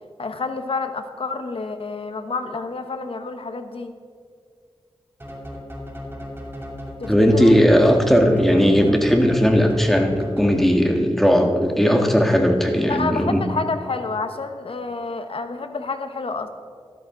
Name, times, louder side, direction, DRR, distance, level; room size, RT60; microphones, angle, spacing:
voice 1, 0.2-3.9 7.0-7.5 12.9-16.5, left 4 dB, 60° left, 7 dB, 1.0 m, -29 dB
sound 1, 5.2-11.0, left 1 dB, 20° right, 2.5 m, -36 dB
voice 2, 7.1-13.4, equal, ahead, 3 dB, 1.6 m, -17 dB
13.0 x 12.5 x 3.8 m, 2.2 s
wide cardioid pair, 75°, 10 cm